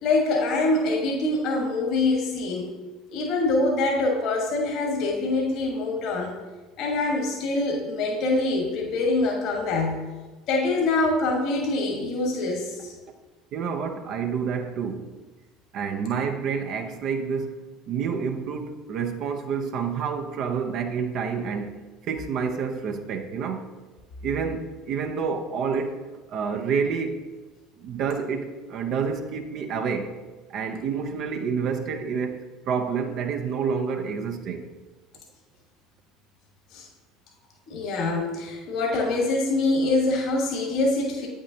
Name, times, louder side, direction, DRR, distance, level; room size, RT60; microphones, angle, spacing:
voice 1, 0.0-2.7 3.1-6.3 6.8-10.1 10.5-12.9 36.7-36.9 37.7-41.3, left 2 dB, 60° left, 0 dB, 1.3 m, -24 dB
voice 2, 13.5-15.1 15.7-17.6 17.9-23.7 24.2-26.0 26.3-27.2 27.8-30.1 30.5-34.7, right 6 dB, 55° right, 5 dB, 0.6 m, -28 dB
8.2 x 6.1 x 2.8 m, 1.2 s
hypercardioid pair, 70°, 0 cm